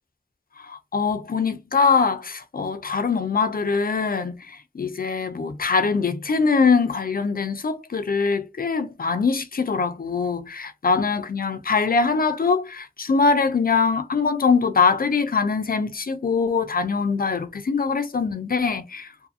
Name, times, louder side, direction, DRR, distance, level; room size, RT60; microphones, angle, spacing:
voice 1, 0.6-19.1, left 5 dB, 80° left, 0.5 m, -23 dB
2.6 x 2.4 x 2.6 m
wide cardioid pair, 55°, 15 cm